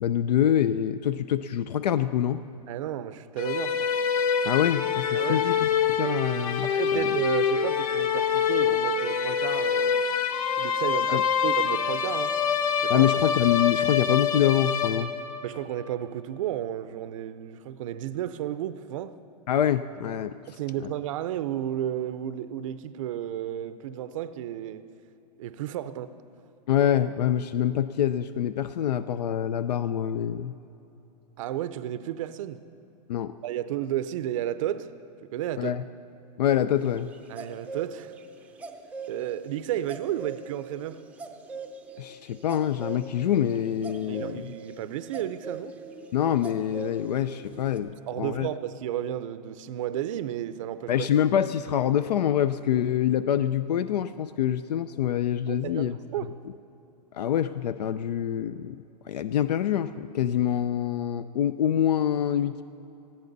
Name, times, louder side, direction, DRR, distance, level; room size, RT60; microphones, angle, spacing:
voice 1, 0.0-2.4 4.4-7.2 11.1-11.2 12.9-15.1 19.5-20.4 20.8-20.9 26.7-30.5 33.1-33.3 35.6-35.8 36.4-37.1 42.0-44.5 46.1-48.5 50.9-56.0 57.1-62.6, left 10 dB, 75° left, 0.5 m, -26 dB
voice 2, 2.7-3.9 5.1-5.5 6.6-10.0 10.6-12.4 12.7-13.1 15.4-19.1 20.5-24.8 25.4-26.1 31.4-32.6 33.4-34.9 35.2-35.8 37.3-38.1 39.1-41.0 44.1-45.7 48.1-51.1 55.5-56.4, right 11 dB, 50° right, 0.6 m, -32 dB
sound 1, 3.4-15.4, left 7 dB, 55° left, 1.1 m, -25 dB
sound 2, 37.0-39.1 39.5-39.6 39.9-47.8, right 4 dB, 5° right, 0.6 m, -41 dB
19.5 x 14.0 x 4.0 m
hypercardioid pair, 155°, 21 cm